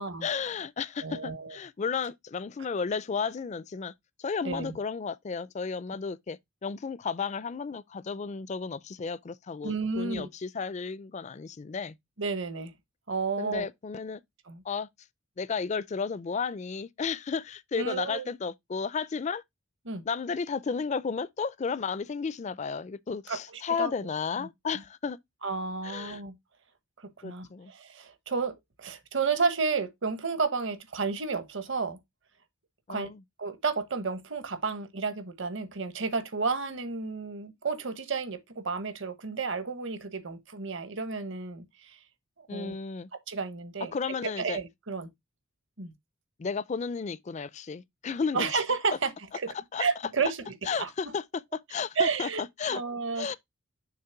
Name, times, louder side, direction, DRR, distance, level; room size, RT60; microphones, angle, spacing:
voice 1, 0.2-3.9 4.2-12.0 13.4-14.2 14.6-14.9 15.4-19.4 20.1-25.2 25.8-26.2 27.2-27.7 32.9-33.2 42.5-43.1 43.9-44.6 46.4-48.5 49.7-49.9 50.6-51.2 51.5-52.8 53.2-53.3, left 5 dB, 35° left, 0.4 m, -33 dB
voice 2, 1.0-1.5 4.4-4.8 9.6-10.3 12.2-12.7 13.1-13.7 14.5-14.6 17.7-18.2 19.8-20.1 23.3-23.4 23.8-24.1 24.4-24.5 25.4-26.4 27.0-32.0 32.9-33.1 33.4-42.0 42.4-42.8 43.3-43.9 44.2-45.1 45.8-45.9 48.3-49.1 49.4-50.9 52.0-52.4 52.7-53.3, right 4 dB, 60° right, 1.1 m, -31 dB
6.6 x 3.3 x 5.7 m
head